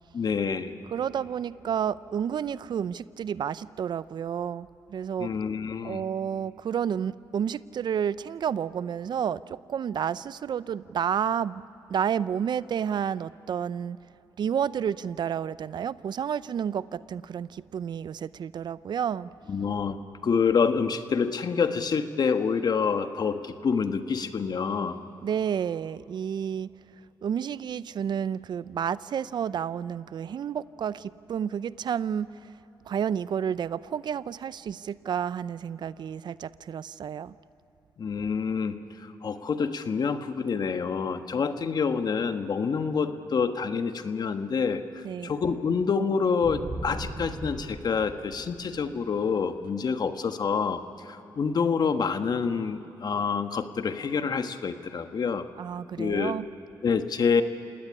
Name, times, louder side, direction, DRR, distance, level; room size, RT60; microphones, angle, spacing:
voice 1, 0.1-0.7 5.2-6.0 19.5-25.0 38.0-55.4 56.0-56.3 56.8-57.4, left 5 dB, 50° left, 8 dB, 1.4 m, -27 dB
voice 2, 0.9-5.3 5.8-11.6 11.9-14.0 14.4-19.3 25.2-26.7 27.2-32.5 32.9-37.4 45.0-45.3 55.6-56.5, right 8 dB, 60° right, 18 dB, 0.5 m, -30 dB
sound 1, 46.4-49.0, right 2 dB, 30° right, 7.8 m, -38 dB
27.5 x 18.0 x 9.9 m, 2.9 s
cardioid pair, 65°, 9 cm